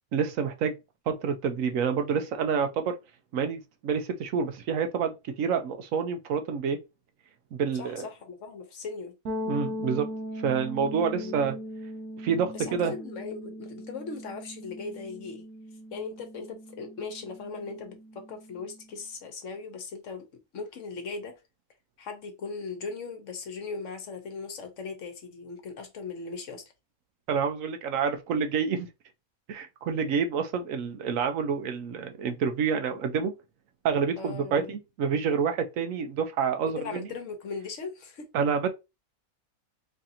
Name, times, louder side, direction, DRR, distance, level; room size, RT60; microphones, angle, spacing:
voice 1, 0.1-0.7 1.1-3.0 3.3-6.8 7.5-8.1 9.5-10.1 10.4-11.6 12.2-12.9 27.3-28.9 29.5-33.3 33.8-37.1 38.3-38.7, right 6 dB, 75° right, 1.0 m, -28 dB
voice 2, 7.7-9.1 11.2-11.4 12.5-15.4 15.9-20.3 20.5-21.4 22.0-26.7 34.2-34.7 36.7-38.3, left 4 dB, 65° left, 1.1 m, -39 dB
sound 1, 9.3-19.0, equal, 90° right, 1.2 m, -39 dB
3.7 x 3.3 x 2.8 m
omnidirectional pair, 1.5 m